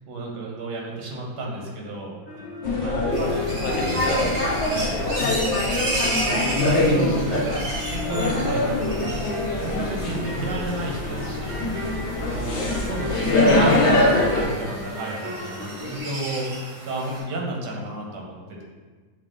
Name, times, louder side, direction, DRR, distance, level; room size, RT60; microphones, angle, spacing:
voice 1, 0.1-2.1 2.8-3.5 4.6-5.0 6.2-11.6 12.2-12.6 12.8-16.5 16.8-18.3, right 1 dB, 85° right, -2 dB, 1.5 m, -32 dB
sound 1, 2.3-5.9 6.2-16.0, left 2 dB, 15° right, 0.5 m, -37 dB
sound 2, 2.6-14.5, left 2 dB, 60° left, 0.8 m, -23 dB
voice 2, 2.8-3.3 3.6-5.8, left 2 dB, 80° left, 0 dB, 1.3 m, -34 dB
sound 3, 3.1-17.2, right 1 dB, 65° right, 1.6 m, -33 dB
6.2 x 2.2 x 3.7 m, 1.4 s
omnidirectional pair, 1.8 m